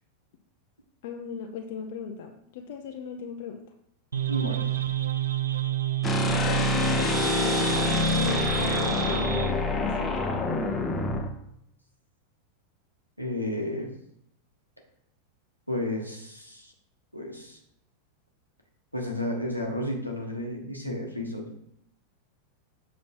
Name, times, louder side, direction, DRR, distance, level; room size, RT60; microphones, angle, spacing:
voice 1, 1.0-3.6 6.4-10.1, left 6 dB, 55° left, 3 dB, 0.7 m, -37 dB
sound 1, 4.1-9.5, right 10 dB, 70° right, 0.5 m, -29 dB
voice 2, 4.3-4.7 13.2-13.9 15.7-16.7 17.1-17.6 18.9-21.6, left 1 dB, 90° left, 0 dB, 1.3 m, -32 dB
sound 2, 6.0-11.3, left 3 dB, 20° left, 1.0 m, -26 dB
7.5 x 4.1 x 4.5 m, 0.75 s
figure-of-eight pair, 90°, 0 cm